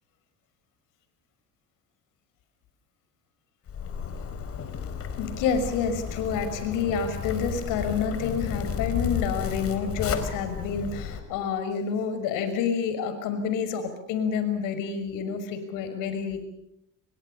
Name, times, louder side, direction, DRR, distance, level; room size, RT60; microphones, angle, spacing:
Zipper (clothing), 3.7-11.2, left 7 dB, 45° left, 4.5 m, -33 dB
voice 1, 5.2-16.4, left 6 dB, 80° left, 10 dB, 6.1 m, -28 dB
29.5 x 24.5 x 5.6 m, 0.79 s
cardioid pair, 115°, 31 cm